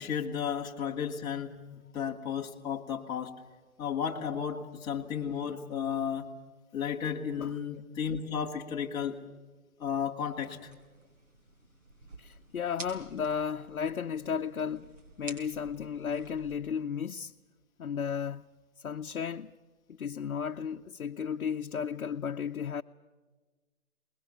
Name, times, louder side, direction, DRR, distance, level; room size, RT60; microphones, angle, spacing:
voice 1, 0.0-1.6 1.9-3.3 3.8-6.3 6.7-9.2 9.8-10.7, left 7 dB, 10° left, 1.1 m, -33 dB
sound 1, 10.3-16.6, right 2 dB, 60° right, 5.0 m, -50 dB
voice 2, 12.2-14.9 15.2-17.3 17.8-18.5 18.8-19.5 19.9-22.8, left 7 dB, 70° left, 0.8 m, -34 dB
24.5 x 21.0 x 8.1 m
figure-of-eight pair, 145°, 42 cm